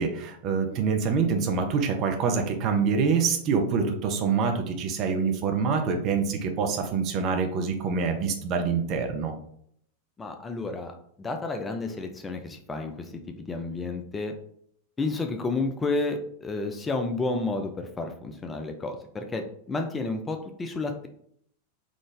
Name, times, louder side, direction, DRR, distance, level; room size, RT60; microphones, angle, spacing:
voice 1, 0.0-9.3, right 5 dB, 35° right, 4 dB, 0.6 m, -26 dB
voice 2, 10.2-14.3 15.0-21.1, left 3 dB, 15° left, 5 dB, 0.4 m, -31 dB
3.8 x 2.5 x 3.2 m, 0.67 s
figure-of-eight pair, 90°, 0 cm